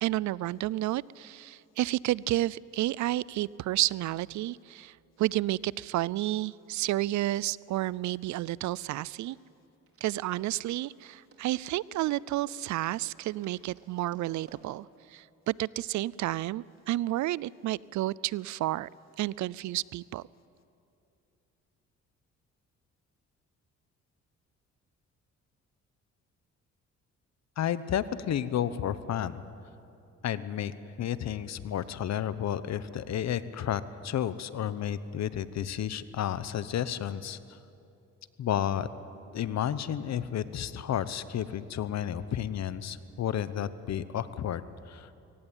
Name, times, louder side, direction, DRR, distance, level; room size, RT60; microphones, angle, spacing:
voice 1, 0.0-9.4 10.0-18.9 19.2-20.2, right 15 dB, 70° right, 23 dB, 0.5 m, -31 dB
sound 1, 7.6-15.9, right 3 dB, 50° right, 4.5 m, -62 dB
voice 2, 27.6-29.4 30.2-37.6 38.4-38.9 39.3-45.1, left 10 dB, 60° left, 14 dB, 1.0 m, -32 dB
22.5 x 18.0 x 9.0 m, 2.7 s
cardioid pair, 90°, 30 cm